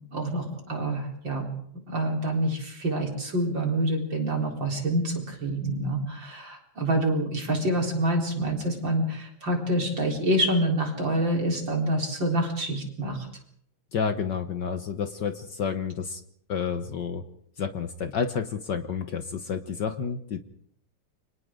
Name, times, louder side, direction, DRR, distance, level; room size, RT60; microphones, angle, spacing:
voice 1, 0.1-1.5 1.9-13.3, right 1 dB, 35° right, 1 dB, 4.5 m, -27 dB
voice 2, 13.9-16.2 16.5-17.2 17.6-20.4, left 6 dB, 70° left, 8 dB, 1.0 m, -30 dB
29.5 x 25.5 x 3.8 m, 0.65 s
omnidirectional pair, 3.5 m